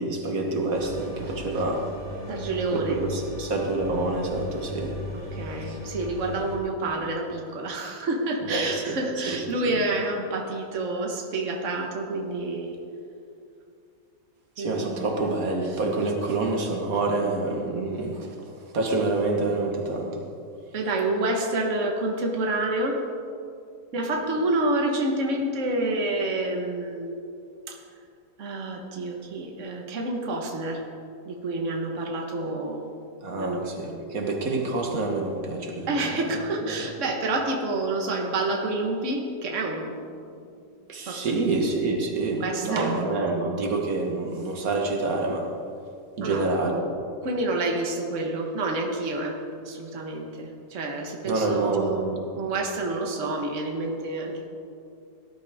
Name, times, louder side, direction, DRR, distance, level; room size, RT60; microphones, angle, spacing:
voice 1, 0.0-1.9 2.7-5.0 5.7-5.8 8.5-9.0 9.3-9.4 14.6-18.3 18.7-20.2 33.2-35.9 36.6-36.8 40.9-45.5 46.2-46.9 51.2-52.3, right 3 dB, 80° right, 2 dB, 1.8 m, -27 dB
sound 1, 0.7-6.6, left 1 dB, 75° left, 3.3 m, -38 dB
voice 2, 2.3-3.0 5.1-12.8 14.6-15.0 20.7-23.0 23.9-27.1 27.7-27.8 28.4-30.8 31.3-32.9 33.4-33.7 35.9-40.0 41.1-41.4 42.2-43.0 46.2-46.5 47.2-49.4 49.6-54.5, right 2 dB, 60° right, 1 dB, 1.6 m, -28 dB
18.0 x 12.0 x 3.5 m, 2.5 s
omnidirectional pair, 1.5 m